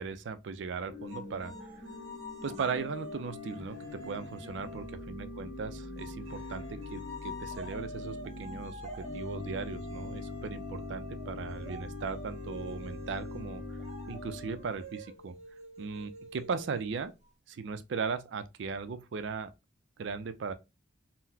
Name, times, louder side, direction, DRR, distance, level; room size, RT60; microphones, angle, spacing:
voice 1, 0.0-1.5 2.4-13.8 14.1-15.4 15.8-17.1 17.5-19.5 20.0-20.5, right 5 dB, 75° right, 0.4 m, -38 dB
Organ / Church bell, 0.7-14.8, left 2 dB, 5° right, 1.3 m, -43 dB
sound 1, 1.1-5.0 6.0-17.3, left 1 dB, 35° right, 0.7 m, -47 dB
3.8 x 2.0 x 2.7 m
head